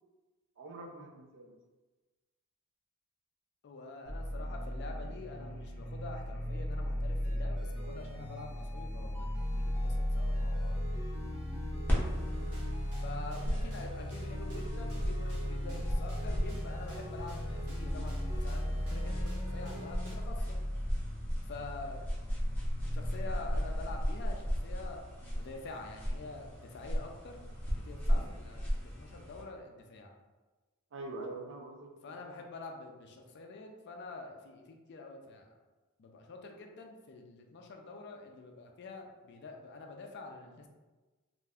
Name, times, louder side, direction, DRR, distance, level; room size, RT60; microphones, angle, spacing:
voice 1, 0.6-1.6 12.4-12.5 30.9-32.2, right 2 dB, 55° right, 2 dB, 0.4 m, -45 dB
voice 2, 3.6-10.8 12.8-20.6 21.5-22.1 22.9-27.4 27.7-30.1 32.0-35.5 36.0-40.7, left 3 dB, 50° left, 3 dB, 0.4 m, -47 dB
sound 1, 4.1-24.0, equal, 35° left, 0.9 m, -37 dB
sound 2, 7.2-20.2, equal, 80° right, 0.8 m, -46 dB
sound 3, 11.9-29.4, equal, 10° left, 0.6 m, -36 dB
2.4 x 2.1 x 3.4 m, 1.2 s
head